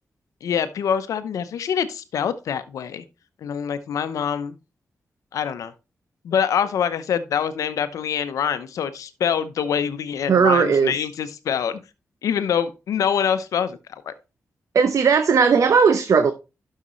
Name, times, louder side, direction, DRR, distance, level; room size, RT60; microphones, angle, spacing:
voice 1, 0.4-3.0 3.4-4.6 5.3-5.7 6.2-11.8 12.2-13.8 14.1-14.2, left 8 dB, 90° left, 0.8 m, -25 dB
voice 2, 10.3-11.0 14.7-16.3, right 5 dB, 70° right, 0.8 m, -17 dB
11.0 x 6.6 x 3.1 m
cardioid pair, 50°, 6 cm